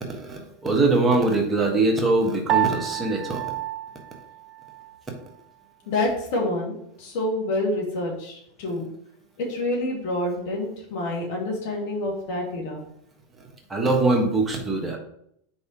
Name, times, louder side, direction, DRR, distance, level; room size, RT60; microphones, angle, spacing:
voice 1, 0.0-3.5 13.7-15.0, right 2 dB, 20° right, 1 dB, 1.3 m, -22 dB
Piano, 2.5-5.0, right 13 dB, 45° right, 0.4 m, -28 dB
voice 2, 5.9-6.7 7.0-8.9 9.4-12.8, left 1 dB, 60° left, -1 dB, 2.2 m, -27 dB
4.7 x 4.2 x 5.6 m, 0.73 s
hypercardioid pair, 90°, 0 cm